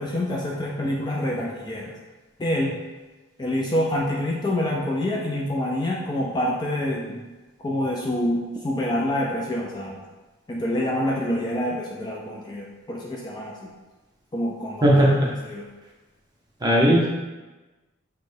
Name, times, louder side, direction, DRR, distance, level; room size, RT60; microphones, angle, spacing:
voice 1, 0.0-1.9 2.4-2.8 3.4-7.2 7.6-10.0 10.5-13.7 14.3-15.0 15.4-15.7, left 1 dB, 20° left, -2 dB, 0.3 m, -26 dB
voice 2, 14.8-15.3 16.6-17.1, equal, 20° right, -4 dB, 0.7 m, -17 dB
6.1 x 2.2 x 3.4 m, 1.2 s
head